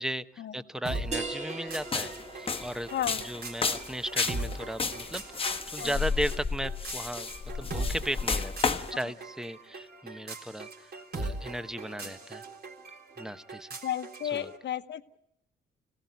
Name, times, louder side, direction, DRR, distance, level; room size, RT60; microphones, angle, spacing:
voice 1, 0.0-2.9 3.2-5.2 5.7-7.3 7.5-12.4 13.2-13.7 14.2-14.5, equal, 5° right, 12 dB, 0.9 m, -36 dB
sound 1, 0.8-14.6, right 2 dB, 55° right, 3.8 m, -41 dB
sound 2, 1.1-6.5, right 3 dB, 35° right, 2.0 m, -42 dB
sound 3, 1.8-8.9, left 4 dB, 30° left, 1.2 m, -32 dB
voice 2, 2.9-3.2 5.8-6.0 13.8-15.2, left 10 dB, 60° left, 10 dB, 1.2 m, -33 dB
26.0 x 17.5 x 9.4 m, 0.78 s
cardioid pair, 90°, 20 cm